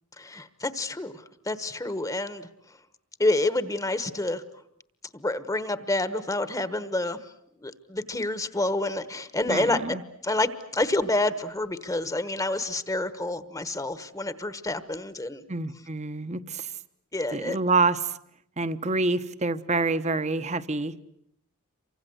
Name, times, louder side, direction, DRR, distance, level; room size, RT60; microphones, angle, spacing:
voice 1, 0.2-2.5 3.2-4.4 5.1-7.2 7.6-10.0 10.2-15.4 17.1-17.6, left 2 dB, 15° left, 13 dB, 1.2 m, -28 dB
voice 2, 9.5-10.0 15.5-16.7 17.3-18.1 18.6-21.1, right 3 dB, 35° right, 13 dB, 1.1 m, -27 dB
28.5 x 25.0 x 8.1 m, 0.71 s
head